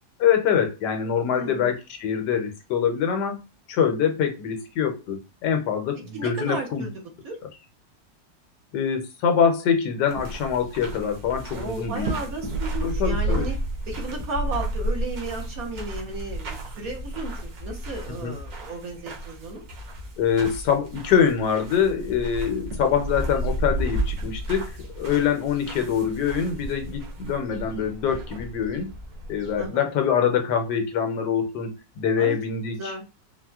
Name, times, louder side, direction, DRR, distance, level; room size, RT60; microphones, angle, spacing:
voice 1, 0.2-3.4 3.7-6.9 8.7-12.1 12.8-13.4 18.2-18.3 20.2-28.9 29.3-32.9, left 7 dB, 75° left, 6 dB, 1.2 m, -24 dB
voice 2, 1.3-1.7 6.1-6.9 7.2-7.4 11.5-13.6 13.9-17.3 17.6-19.6 29.6-29.9 32.2-32.4 32.8-33.0, right 2 dB, 60° right, 0 dB, 1.2 m, -34 dB
sound 1, 10.1-29.7, right 1 dB, 80° right, 1.5 m, -32 dB
4.1 x 2.1 x 2.3 m, 0.27 s
omnidirectional pair, 1.9 m